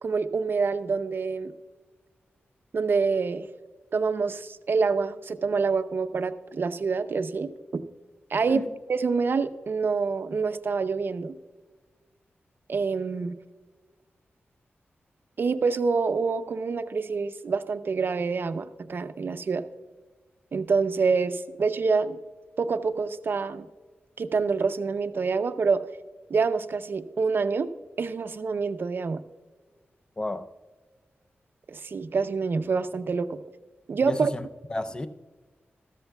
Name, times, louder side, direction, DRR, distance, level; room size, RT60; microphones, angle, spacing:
voice 1, 0.0-1.5 2.7-3.5 3.9-7.8 8.3-11.4 12.7-13.4 15.4-19.6 20.5-22.2 22.6-23.7 24.2-25.8 26.3-27.7 28.0-29.2 31.7-33.4 33.9-34.3, right 4 dB, 55° right, 0.6 m, -26 dB
voice 2, 30.2-30.5 34.0-35.1, left 1 dB, 20° left, 0.5 m, -33 dB
14.0 x 13.5 x 2.3 m
wide cardioid pair, 130°, 4 cm